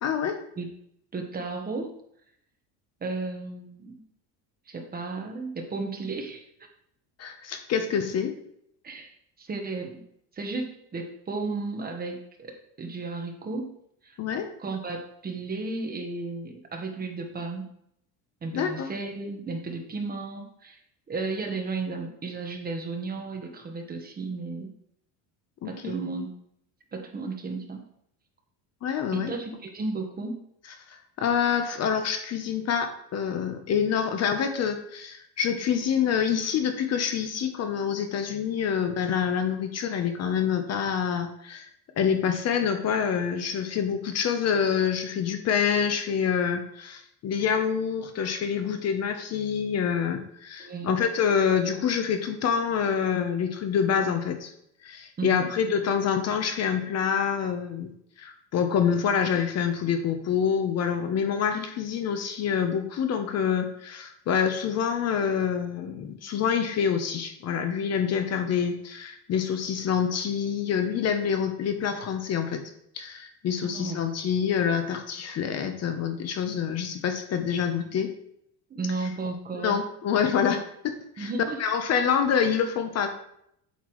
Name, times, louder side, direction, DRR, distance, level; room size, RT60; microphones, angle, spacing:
voice 1, 0.0-0.4 7.2-8.3 14.2-14.5 18.5-18.9 25.6-25.9 28.8-29.3 30.9-41.7 42.0-54.5 54.8-57.9 58.2-72.6 72.9-78.1 79.5-81.3 81.6-83.1, left 7 dB, 40° left, 7 dB, 0.8 m, -26 dB
voice 2, 1.1-1.9 3.0-4.0 4.7-6.4 8.8-9.1 9.4-10.0 10.3-13.7 14.0-14.2 14.6-17.7 18.4-20.8 21.1-24.7 25.6-26.3 26.9-27.9 29.1-30.4 50.6-51.0 55.2-55.5 73.6-74.1 78.7-79.8 81.2-81.6, right 3 dB, 20° right, 3 dB, 1.2 m, -34 dB
8.3 x 8.2 x 3.1 m, 0.73 s
cardioid pair, 145°, 41 cm